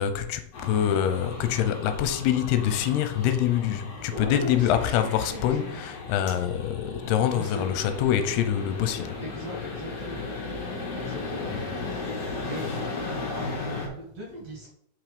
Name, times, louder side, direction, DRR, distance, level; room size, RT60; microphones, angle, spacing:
voice 1, 0.0-9.1 11.5-11.7, left 10 dB, 85° left, 2.8 m, -25 dB
sound 1, 0.5-13.9, left 3 dB, 45° left, 2.5 m, -36 dB
voice 2, 4.1-5.8 7.3-7.7 8.9-10.2 10.9-11.5 12.4-14.7, equal, 45° right, 2.5 m, -39 dB
5.8 x 5.5 x 5.1 m
omnidirectional pair, 4.6 m